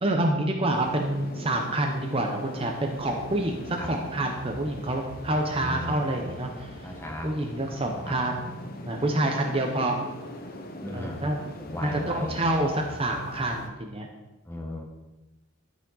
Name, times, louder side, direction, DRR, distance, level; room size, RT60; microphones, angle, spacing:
voice 1, 0.0-6.9 7.2-8.5 8.9-10.1 10.9-11.4 11.8-14.1, right 1 dB, 25° right, 2 dB, 0.7 m, -27 dB
sound 1, 0.7-13.7, left 1 dB, 45° left, 0.8 m, -41 dB
voice 2, 5.5-6.3 6.8-7.4 8.0-8.2 10.8-11.2 11.6-12.4 14.4-14.8, left 1 dB, 10° left, 1 dB, 1.1 m, -36 dB
12.5 x 5.1 x 3.9 m, 1.1 s
head